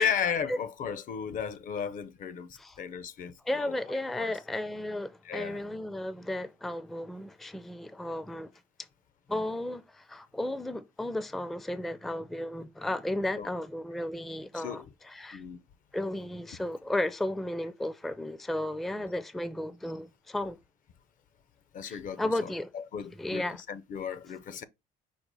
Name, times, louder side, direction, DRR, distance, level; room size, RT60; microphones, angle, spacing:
voice 1, 0.0-3.7 4.2-4.3 5.2-5.6 13.4-13.5 14.5-14.9 15.3-15.6 21.7-22.5 22.7-24.6, left 7 dB, 50° left, 0.5 m, -34 dB
voice 2, 3.4-8.5 9.3-15.4 15.9-20.6 21.8-22.7 23.1-23.6, left 1 dB, ahead, 0.4 m, -34 dB
5.3 x 2.1 x 4.6 m
cardioid pair, 110°, 17 cm